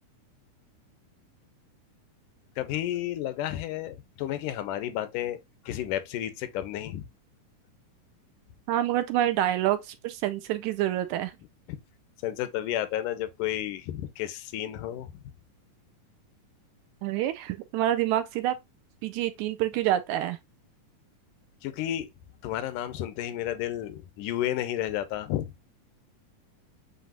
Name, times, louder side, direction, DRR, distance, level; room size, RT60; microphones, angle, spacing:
voice 1, 2.6-5.4 5.7-7.1 11.7-11.8 12.2-15.1 21.6-22.1 22.4-25.5, left 12 dB, 85° left, 2.2 m, -32 dB
voice 2, 8.7-11.3 17.0-18.6 19.0-20.4, right 13 dB, 80° right, 1.8 m, -27 dB
7.9 x 2.7 x 2.2 m
omnidirectional pair, 3.8 m